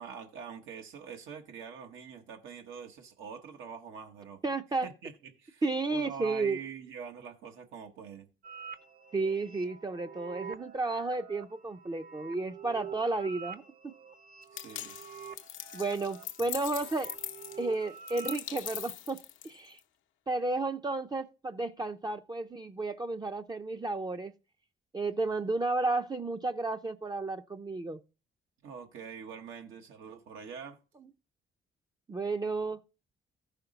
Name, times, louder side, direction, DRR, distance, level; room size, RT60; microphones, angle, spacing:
voice 1, 0.0-4.4 4.8-5.6 5.9-8.3 14.5-14.9 28.6-30.8, right 6 dB, 80° right, 1.2 m, -44 dB
voice 2, 4.4-4.9 5.6-6.6 9.1-13.9 15.7-17.1 17.6-19.2 19.4-19.8 20.3-24.3 24.9-28.0 32.1-32.8, right 3 dB, 20° right, 0.5 m, -32 dB
sound 1, 8.4-18.8, right 6 dB, 50° right, 1.0 m, -47 dB
sound 2, 14.6-19.8, left 12 dB, 80° left, 0.7 m, -41 dB
14.0 x 5.8 x 3.9 m
cardioid pair, 90°, 20 cm